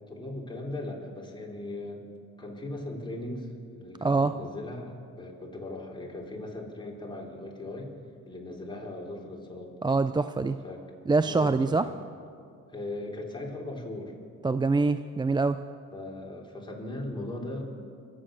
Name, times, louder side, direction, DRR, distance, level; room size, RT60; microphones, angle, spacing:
voice 1, 0.0-2.0 2.4-7.9 8.3-9.7 10.6-10.8 11.2-12.0 12.7-14.2 15.9-17.7, left 1 dB, 15° left, -2 dB, 3.6 m, -38 dB
voice 2, 4.0-4.3 9.8-10.6 11.1-11.9 14.4-15.6, right 3 dB, 15° right, 11 dB, 0.4 m, -24 dB
25.5 x 8.8 x 6.3 m, 2.3 s
cardioid pair, 90°, 30 cm